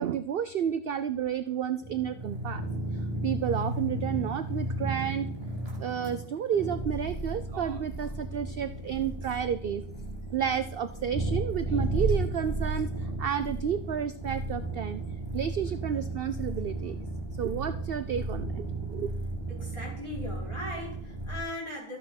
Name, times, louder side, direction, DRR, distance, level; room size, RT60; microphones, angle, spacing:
voice 1, 0.0-2.6 2.9-5.3 5.8-9.8 10.3-15.0 15.3-17.0 17.4-19.1, right 8 dB, 55° right, 11 dB, 0.6 m, -31 dB
sound 1, 1.8-21.4, right 2 dB, 15° right, 3.7 m, -34 dB
voice 2, 19.5-22.0, left 1 dB, 20° left, -5 dB, 5.6 m, -38 dB
13.5 x 8.5 x 6.0 m, 0.65 s
omnidirectional pair, 1.5 m